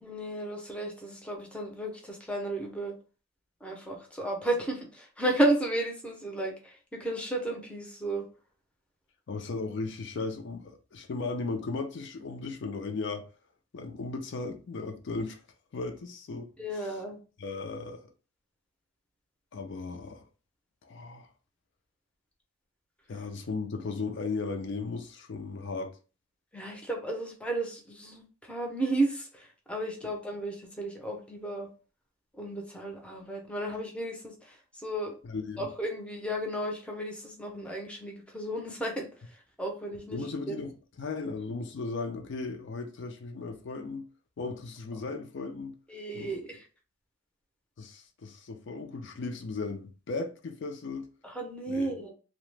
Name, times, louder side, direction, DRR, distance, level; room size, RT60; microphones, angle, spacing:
voice 1, 0.0-2.9 3.6-8.2 16.6-17.2 26.5-31.7 32.4-35.1 35.6-39.1 39.6-40.2 40.5-40.6 45.9-46.6 51.2-52.1, right 1 dB, 5° left, 0.5 m, -33 dB
voice 2, 9.3-13.3 13.7-15.4 15.7-17.0 17.4-18.1 19.5-20.2 20.8-21.3 23.1-25.9 35.2-35.7 40.1-44.1 44.4-45.7 46.1-46.4 47.8-51.1 51.7-51.9, left 3 dB, 60° left, 0.4 m, -36 dB
2.8 x 2.0 x 3.2 m
head